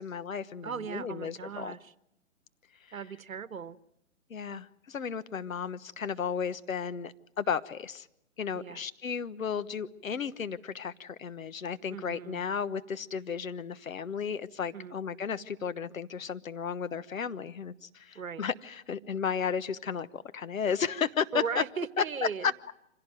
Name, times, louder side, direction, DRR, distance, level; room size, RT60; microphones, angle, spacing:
voice 1, 0.0-1.7 4.3-8.1 8.4-21.6 22.0-22.1 22.4-22.7, left 7 dB, 75° left, 13 dB, 1.3 m, -34 dB
voice 2, 0.6-1.9 2.9-3.8 8.5-8.8 11.9-12.4 14.7-14.9 18.1-18.4 21.3-22.5, right 6 dB, 80° right, 15 dB, 1.3 m, -37 dB
26.0 x 17.0 x 9.2 m, 0.84 s
hypercardioid pair, 140°, 41 cm